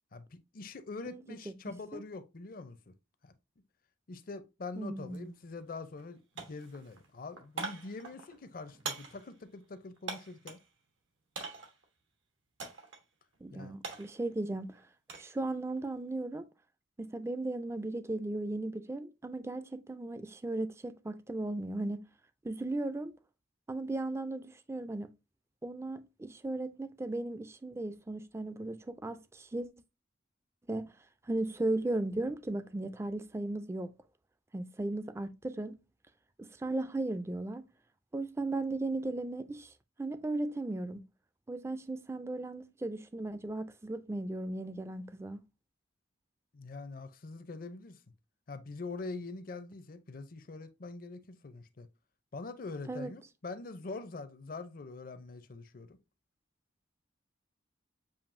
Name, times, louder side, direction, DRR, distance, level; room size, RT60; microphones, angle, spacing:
voice 1, 0.1-2.9 3.2-3.3 4.1-10.6 13.5-13.8 46.5-48.0 48.5-51.9 52.3-56.0, left 3 dB, 45° left, 0.5 m, -44 dB
voice 2, 1.1-1.5 1.9-2.0 4.8-5.3 13.4-14.8 15.1-16.5 17.0-22.0 22.4-23.1 23.7-25.1 25.6-29.7 30.7-30.9 31.3-33.9 34.5-35.8 36.4-37.7 38.1-39.7 40.0-41.0 41.5-45.4 52.9-53.1, right 2 dB, 15° right, 0.3 m, -36 dB
sound 1, 5.1-5.2 5.6-6.1 6.4-10.7 11.3-11.8 12.6-13.0 13.3-15.3 15.7-16.1, right 4 dB, 90° right, 1.1 m, -43 dB
7.0 x 2.6 x 2.5 m
head